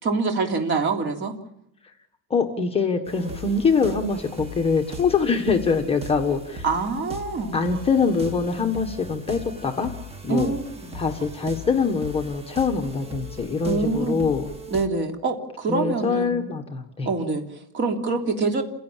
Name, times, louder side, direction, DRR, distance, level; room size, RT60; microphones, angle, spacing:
voice 1, 0.0-1.3 6.6-7.6 10.3-10.9 13.6-14.2 14.7-16.4 17.0-18.6, right 3 dB, 30° right, 3 dB, 3.2 m, -25 dB
voice 2, 2.3-6.6 7.5-9.9 10.2-10.5 10.9-14.5 15.7-17.1, left 5 dB, 15° left, 4 dB, 1.5 m, -24 dB
sound 1, 3.0-14.9, left 1 dB, 15° right, 1.7 m, -39 dB
29.0 x 17.0 x 7.5 m, 0.79 s
cardioid pair, 175°, 36 cm